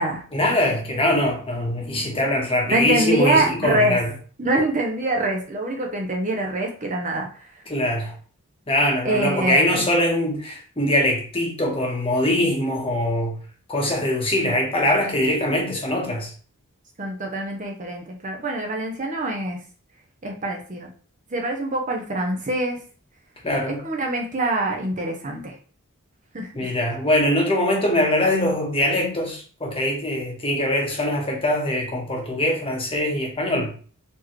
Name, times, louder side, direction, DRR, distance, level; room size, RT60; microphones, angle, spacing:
voice 1, 0.3-4.1 7.7-8.1 8.7-13.3 13.7-16.3 23.4-23.8 26.6-33.7, left 1 dB, 25° left, 1.1 m, -22 dB
voice 2, 2.7-4.0 4.4-7.5 9.0-9.9 17.0-19.6 20.2-20.9 21.3-22.8 23.7-25.6 26.3-26.7, right 1 dB, 35° right, 0.7 m, -25 dB
4.4 x 3.0 x 3.1 m
head